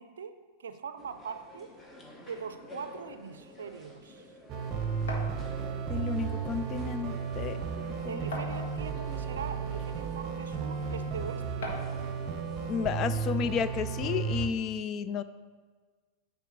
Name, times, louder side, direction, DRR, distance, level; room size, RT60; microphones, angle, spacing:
voice 1, 0.0-1.7 2.3-4.3 8.0-11.7, right 6 dB, 65° right, 10 dB, 0.5 m, -42 dB
sound 1, 1.0-13.3, left 1 dB, 15° left, 1.0 m, -50 dB
sound 2, 4.5-14.5, right 6 dB, 35° right, 0.7 m, -34 dB
sound 3, 5.1-5.4 6.5-6.6 7.0-7.1 8.3-9.0 9.8-9.9 11.6-12.0, left 1 dB, 60° left, 1.2 m, -38 dB
voice 2, 5.9-7.6 8.0-8.2 12.7-15.2, left 7 dB, 35° left, 13 dB, 0.3 m, -32 dB
9.2 x 3.5 x 6.3 m, 1.5 s
figure-of-eight pair, 90°, 0 cm